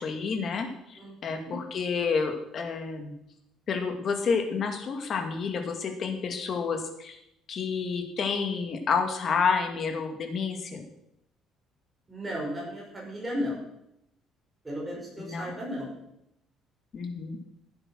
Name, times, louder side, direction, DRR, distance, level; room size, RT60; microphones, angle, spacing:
voice 1, 0.0-3.1 3.7-7.2 7.5-10.8 15.2-15.6 16.9-17.4, left 5 dB, 40° left, 5 dB, 2.2 m, -29 dB
voice 2, 1.0-1.6 12.1-13.6 14.6-15.9, equal, 15° right, -3 dB, 6.0 m, -35 dB
15.5 x 8.8 x 6.3 m, 0.83 s
cardioid pair, 155°, 0 cm